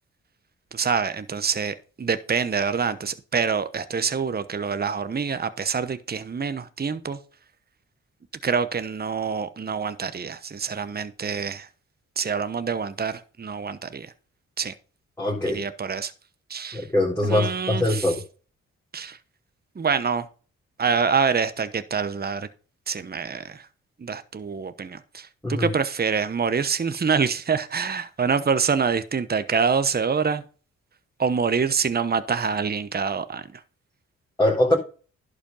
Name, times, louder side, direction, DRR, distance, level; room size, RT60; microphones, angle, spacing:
voice 1, 0.7-7.2 8.4-11.7 12.2-14.1 14.6-14.7 15.5-16.1 16.5-16.9 17.2-18.2 18.9-19.2 19.7-20.3 20.8-22.5 22.9-23.7 24.0-30.4 31.2-33.6, right 6 dB, 30° right, 1.0 m, -26 dB
voice 2, 15.2-15.6 16.7-18.2 25.4-25.7 34.4-34.8, left 1 dB, 10° left, 4.2 m, -22 dB
11.5 x 5.1 x 5.4 m
supercardioid pair, 55°, 30 cm